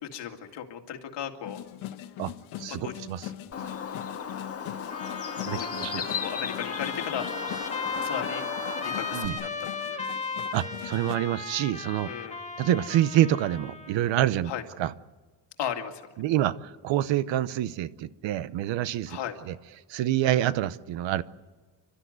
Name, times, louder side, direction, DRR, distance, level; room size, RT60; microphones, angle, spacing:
voice 1, 0.0-1.6 2.7-2.9 5.5-5.7 6.2-7.3 8.0-8.4 8.8-9.5 9.9-10.0 12.1-12.4 14.5-14.6 15.6-16.0 19.1-19.4, left 9 dB, 60° left, 2.3 m, -35 dB
sound 1, 1.4-11.2, left 12 dB, 90° left, 1.4 m, -41 dB
voice 2, 2.6-3.3 5.4-6.0 9.1-9.4 10.5-12.1 12.6-14.5 14.8-14.9 16.2-19.2 19.4-19.6 19.9-21.2, right 12 dB, 70° right, 0.9 m, -27 dB
Bird, 3.5-9.3, left 7 dB, 30° left, 1.7 m, -35 dB
Trumpet, 4.9-14.0, left 4 dB, 15° left, 1.7 m, -36 dB
29.5 x 13.0 x 9.5 m
cardioid pair, 150°, 47 cm